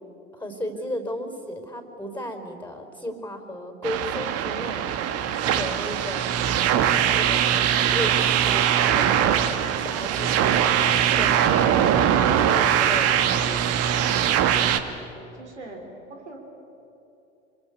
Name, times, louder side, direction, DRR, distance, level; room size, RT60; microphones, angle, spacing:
voice 1, 0.3-4.8 5.4-6.3 6.6-8.7 8.9-13.6, equal, 5° left, 5 dB, 4.4 m, -35 dB
sound 1, 3.8-14.8, right 9 dB, 45° right, 1.6 m, -21 dB
voice 2, 15.1-15.8 16.1-16.4, right 3 dB, 80° right, 2 dB, 4.1 m, -42 dB
26.0 x 25.5 x 8.3 m, 2.9 s
figure-of-eight pair, 70°, 34 cm